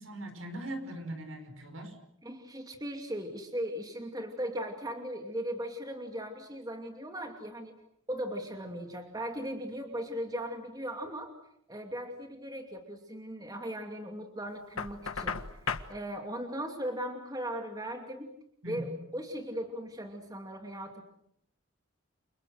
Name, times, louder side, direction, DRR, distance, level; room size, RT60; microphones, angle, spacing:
voice 1, 0.0-2.0 18.6-19.0, right 1 dB, 75° right, 6 dB, 5.6 m, -40 dB
voice 2, 2.2-7.7 8.1-11.3 11.7-18.3 18.6-21.0, equal, 20° right, 4 dB, 2.6 m, -38 dB
Knock, 14.8-15.9, left 5 dB, 90° left, 1.6 m, -35 dB
30.0 x 26.5 x 6.5 m, 0.73 s
head